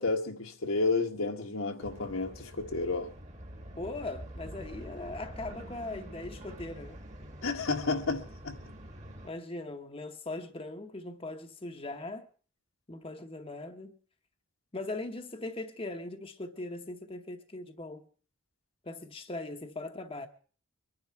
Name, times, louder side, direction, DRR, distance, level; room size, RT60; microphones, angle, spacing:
voice 1, 0.0-3.1 7.4-8.5, left 3 dB, 80° left, 1.8 m, -31 dB
sound 1, 1.8-9.3, equal, 35° right, 1.5 m, -46 dB
voice 2, 3.8-7.0 9.2-12.3 12.9-14.0 14.7-18.1 18.8-20.3, left 2 dB, 25° left, 0.9 m, -40 dB
23.5 x 10.5 x 4.5 m
head